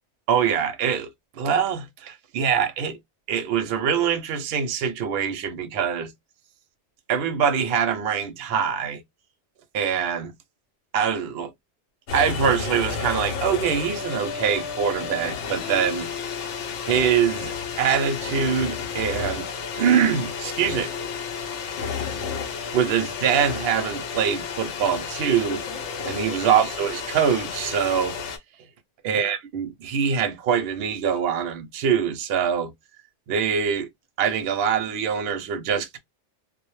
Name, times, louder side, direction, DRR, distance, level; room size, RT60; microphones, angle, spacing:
voice 1, 0.3-1.1 1.4-3.0 3.3-6.1 7.1-9.0 9.7-10.3 10.9-11.5 12.1-16.1 16.9-19.5 19.8-20.9 22.7-25.6 26.1-28.2 29.0-32.7 33.3-33.9 34.2-36.0, right 7 dB, 65° right, 0.7 m, -24 dB
sound 1, 12.1-28.4, left 6 dB, 85° left, 0.9 m, -31 dB
2.1 x 2.1 x 3.0 m
omnidirectional pair, 1.2 m